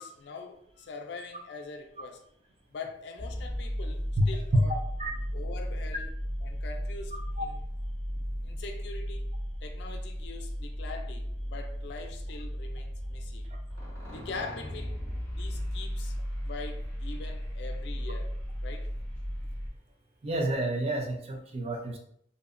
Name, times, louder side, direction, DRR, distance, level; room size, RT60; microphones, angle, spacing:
voice 1, 0.0-2.2 2.7-4.8 5.3-6.1 6.4-7.6 8.4-9.3 9.6-13.5 14.1-15.0 15.4-16.2 16.5-18.3 18.6-18.9, left 4 dB, 70° left, 0.4 m, -43 dB
sound 1, 3.2-19.7, equal, 80° right, 1.5 m, -35 dB
voice 2, 20.2-22.0, right 1 dB, 35° right, 0.4 m, -29 dB
2.8 x 2.0 x 2.4 m
head